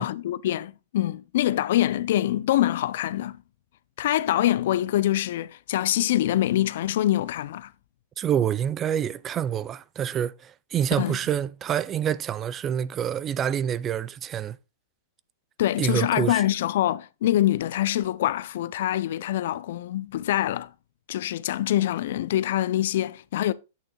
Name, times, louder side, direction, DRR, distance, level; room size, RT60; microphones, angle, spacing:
voice 1, 0.0-3.4 4.0-7.7 11.0-11.2 15.6-20.7 21.1-23.5, left 13 dB, 65° left, 0.4 m, -25 dB
voice 2, 8.2-14.6 15.8-16.4, right 9 dB, 25° right, 0.3 m, -27 dB
8.5 x 6.3 x 2.2 m
hypercardioid pair, 140°, 0 cm